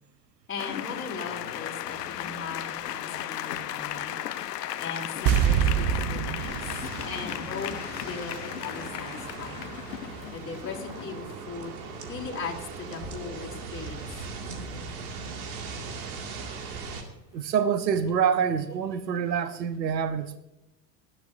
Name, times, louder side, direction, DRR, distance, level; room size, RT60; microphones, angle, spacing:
voice 1, 0.5-4.1 4.8-6.5 7.0-9.8 10.3-11.8 12.1-14.1, left 4 dB, 25° left, -1 dB, 2.9 m, -38 dB
sound 1, 0.6-11.4 13.3-13.4 13.7-13.9 18.0-18.2, left 12 dB, 70° left, 0.9 m, -36 dB
sound 2, 5.3-8.5 8.7-8.8, right 9 dB, 45° right, 0.9 m, -27 dB
sound 3, 6.4-17.0, right 4 dB, 60° right, 2.4 m, -39 dB
voice 2, 17.3-20.4, right 7 dB, 80° right, 11 dB, 1.0 m, -26 dB
19.0 x 13.0 x 2.7 m, 0.94 s
figure-of-eight pair, 80°, 49 cm